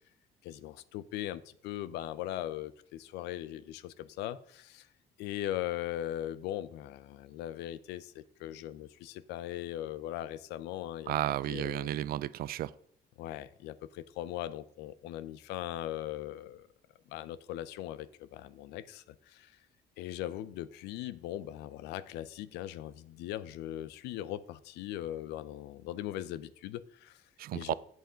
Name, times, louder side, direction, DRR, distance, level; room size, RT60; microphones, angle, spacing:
voice 1, 0.4-4.9 5.2-11.2 11.5-11.9 13.2-16.7 17.1-19.5 20.0-27.2 27.5-27.7, left 13 dB, 90° left, 0.6 m, -39 dB
voice 2, 11.1-12.7 27.4-27.7, right 13 dB, 60° right, 0.5 m, -33 dB
8.0 x 7.9 x 5.0 m
cardioid pair, 110°, 17 cm